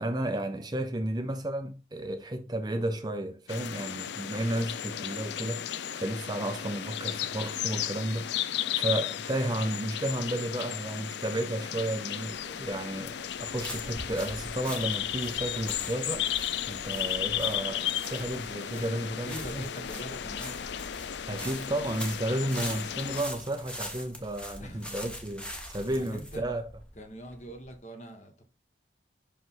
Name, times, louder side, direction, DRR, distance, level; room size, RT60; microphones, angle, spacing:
voice 1, 0.0-16.3 16.7-19.7 21.3-26.7, right 1 dB, 20° right, 0.6 m, -33 dB
sound 1, 3.5-23.2, left 10 dB, 65° left, 0.4 m, -34 dB
sound 2, 12.3-27.8, equal, 5° left, 1.0 m, -43 dB
voice 2, 18.7-20.6 24.6-24.9 25.9-26.4 27.0-28.4, equal, 40° left, 1.5 m, -43 dB
5.6 x 5.3 x 3.8 m
head